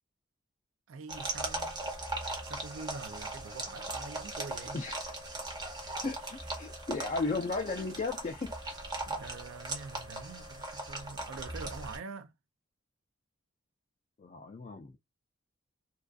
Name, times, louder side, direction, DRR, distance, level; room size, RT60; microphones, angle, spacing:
voice 1, 0.9-1.8 2.4-4.8 5.3-5.7 6.2-6.3 6.6-6.7 7.0-7.1 9.1-12.3, right 4 dB, 75° right, 0.4 m, -45 dB
sound 1, 1.1-12.0, right 2 dB, 20° right, 0.6 m, -39 dB
voice 2, 4.7-5.1 6.0-8.5 14.2-15.0, left 3 dB, 35° left, 0.3 m, -35 dB
2.3 x 2.3 x 2.3 m
head